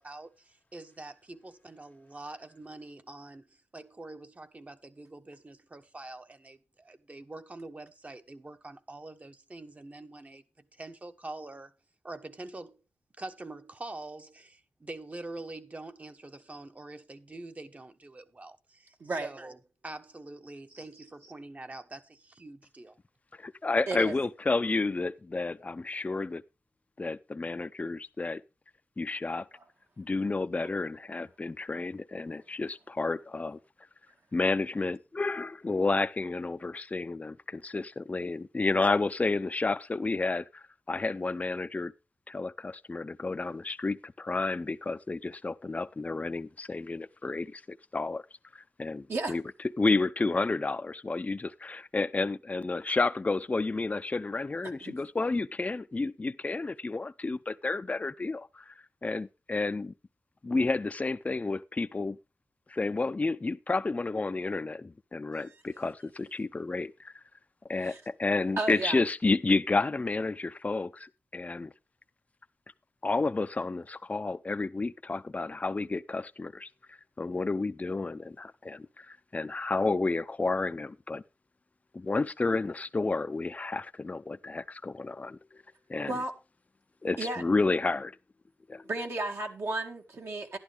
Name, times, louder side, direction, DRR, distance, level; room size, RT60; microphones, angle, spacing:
voice 1, 0.0-11.7 12.0-12.8 13.2-23.0, right 2 dB, 30° right, 1.1 m, -45 dB
voice 2, 23.4-26.4 27.0-28.4 29.0-29.5 30.0-33.6 34.3-41.9 42.3-47.6 47.9-48.2 48.5-49.4 49.8-58.7 59.0-59.9 60.4-62.2 62.7-67.1 67.7-71.7 73.0-81.2 81.9-85.6 85.9-86.2 87.0-88.2 88.7-88.8, left 3 dB, 30° left, 0.6 m, -31 dB
voice 3, 68.6-69.0 86.1-86.3 87.2-87.4 88.8-90.6, right 2 dB, 65° right, 2.0 m, -33 dB
11.5 x 11.0 x 3.4 m
wide cardioid pair, 80°, 5 cm